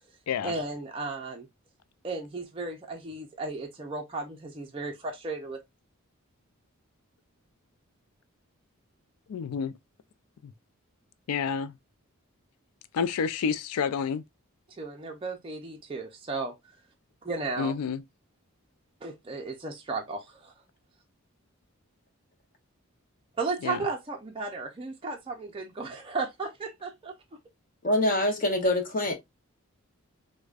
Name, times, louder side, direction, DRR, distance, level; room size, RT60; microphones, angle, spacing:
voice 1, 0.4-1.5 2.0-5.6 14.8-16.5 17.2-17.7 19.0-20.5 23.4-27.1, right 3 dB, 25° right, 0.4 m, -34 dB
voice 2, 9.3-9.7 11.3-11.7 12.9-14.2 17.6-18.0 23.6-23.8, left 6 dB, 85° left, 0.4 m, -29 dB
voice 3, 27.8-29.1, left 1 dB, 40° left, 0.7 m, -25 dB
4.7 x 2.1 x 2.3 m
head